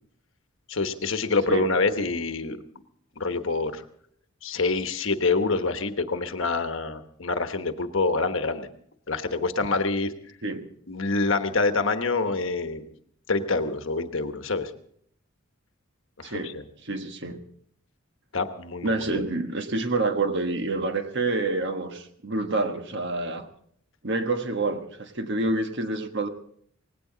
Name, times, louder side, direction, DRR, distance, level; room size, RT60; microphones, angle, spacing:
voice 1, 0.7-2.6 3.2-3.8 4.4-8.7 9.1-10.1 10.9-12.9 13.3-14.7 16.2-16.6 18.3-19.2, left 3 dB, 60° left, 8 dB, 1.2 m, -26 dB
voice 2, 16.2-16.5 16.8-17.4 18.8-23.5 24.0-26.3, right 2 dB, 55° right, 7 dB, 1.3 m, -28 dB
19.0 x 17.0 x 3.9 m, 0.65 s
head